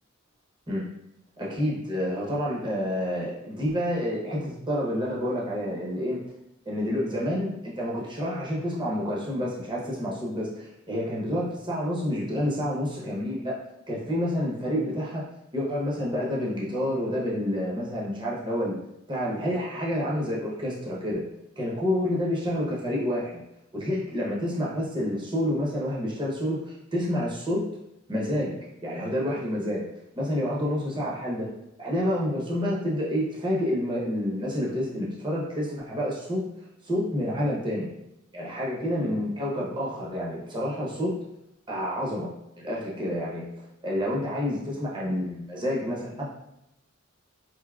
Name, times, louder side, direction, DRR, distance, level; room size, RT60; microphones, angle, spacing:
voice 1, 1.4-6.2 6.7-13.5 13.9-15.2 15.5-18.8 19.1-21.2 21.6-23.4 23.7-27.7 28.1-28.6 28.8-29.8 30.2-31.5 31.8-36.4 36.8-37.9 38.3-41.2 41.7-42.3 42.6-46.3, equal, 25° right, -5 dB, 0.8 m, -28 dB
4.5 x 2.7 x 2.4 m, 0.86 s
head